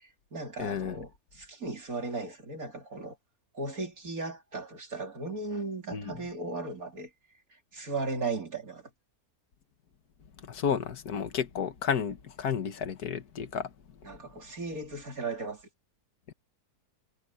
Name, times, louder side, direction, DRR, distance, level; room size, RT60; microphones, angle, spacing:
voice 1, 0.0-3.2 3.5-7.1 7.7-8.9 14.0-15.7, right 3 dB, 60° right, 4.3 m, -36 dB
voice 2, 0.6-1.0 5.9-6.1 10.4-13.7 16.3-16.4, left 7 dB, 70° left, 2.0 m, -32 dB
omnidirectional pair, 1.7 m